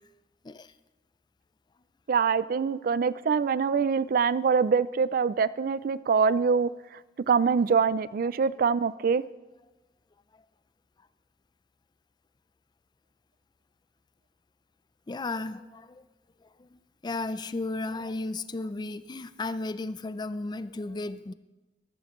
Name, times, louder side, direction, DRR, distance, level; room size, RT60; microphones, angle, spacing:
voice 1, 2.1-6.7 7.3-9.2, right 5 dB, 55° right, 18 dB, 0.3 m, -24 dB
voice 2, 15.1-16.0 16.4-21.3, left 2 dB, 25° left, 14 dB, 0.4 m, -34 dB
14.0 x 13.0 x 3.1 m, 1.1 s
head